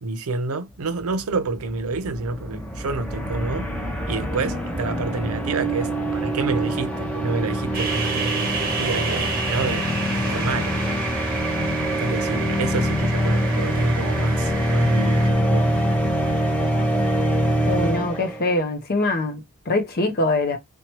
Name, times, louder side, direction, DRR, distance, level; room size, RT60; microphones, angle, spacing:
voice 1, 0.0-3.7 4.1-9.9 10.3-10.8 11.3-15.7, right 3 dB, 70° right, 0.5 m, -28 dB
sound 1, 1.1-18.5, equal, 5° left, 0.7 m, -24 dB
sound 2, 7.7-15.3, right 4 dB, 40° right, 0.8 m, -30 dB
voice 2, 17.6-20.6, left 2 dB, 45° left, 0.6 m, -23 dB
2.8 x 2.2 x 2.9 m
head